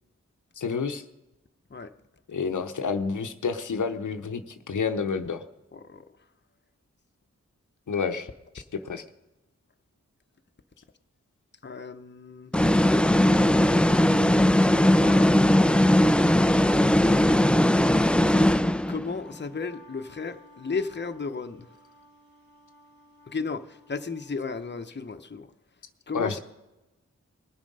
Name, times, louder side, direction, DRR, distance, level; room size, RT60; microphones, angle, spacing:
voice 1, 0.6-1.0 2.3-4.4 4.7-5.4 7.9-8.3 8.8-9.0 26.1-26.4, left 5 dB, 90° left, 0.8 m, -29 dB
voice 2, 5.7-6.1 11.6-12.5 14.8-15.8 16.4-17.4 18.9-21.7 23.3-25.5 26.1-26.4, left 4 dB, 35° left, 0.8 m, -35 dB
sound 1, 12.5-19.1, left 1 dB, 5° left, 0.3 m, -19 dB
Wind instrument woodwind instrument, 19.1-24.4, left 3 dB, 80° right, 3.1 m, -55 dB
20.0 x 7.3 x 5.4 m
wide cardioid pair, 50°, 30 cm